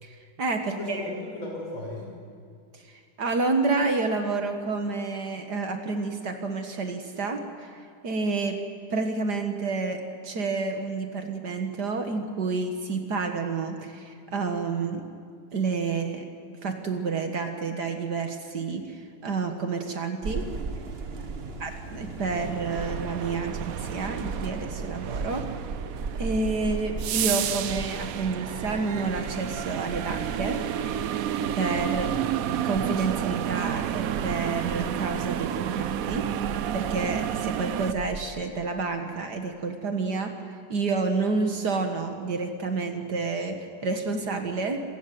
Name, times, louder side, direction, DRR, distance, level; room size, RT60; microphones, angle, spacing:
voice 1, 0.0-1.1 2.7-8.6 8.9-15.1 15.5-16.3 16.6-20.5 21.6-25.5 26.1-30.6 31.0-31.1 31.5-32.1 32.6-36.3 36.7-40.4 40.7-44.8, right 4 dB, 50° right, 6 dB, 2.0 m, -29 dB
voice 2, 0.6-2.1 21.3-21.6 31.9-32.2, left 2 dB, 70° left, -3 dB, 8.0 m, -37 dB
sound 1, 20.2-38.2, right 4 dB, 35° right, 1.1 m, -38 dB
sound 2, 22.2-37.9, right 10 dB, 75° right, 0.7 m, -31 dB
26.5 x 15.0 x 9.3 m, 2.2 s
omnidirectional pair, 2.3 m